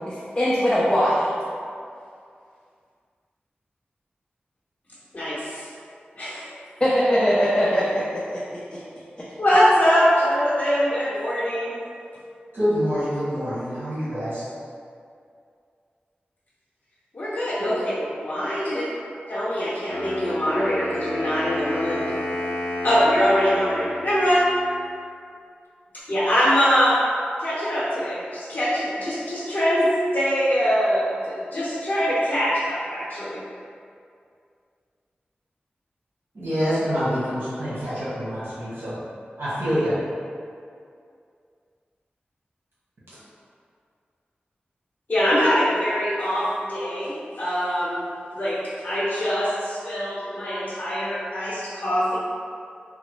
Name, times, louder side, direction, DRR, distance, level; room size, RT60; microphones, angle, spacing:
voice 1, 0.1-1.3 6.8-8.4 8.7-8.8, equal, 20° left, -9 dB, 0.5 m, -21 dB
voice 2, 5.1-5.7 6.2-6.6 9.4-11.8 17.1-18.8 19.3-22.2 22.8-24.4 26.1-27.0 27.4-29.9 30.1-33.4 45.1-48.0 48.3-48.6 48.8-52.2, equal, 45° left, -11 dB, 0.8 m, -23 dB
voice 3, 12.5-14.4 17.6-17.7 36.3-39.0 39.4-40.0, equal, 80° right, -12 dB, 1.3 m, -26 dB
Wind instrument woodwind instrument, 19.9-24.8, left 1 dB, 85° left, 0.5 m, -31 dB
3.7 x 2.1 x 3.0 m, 2.3 s
wide cardioid pair, 85°, 4 cm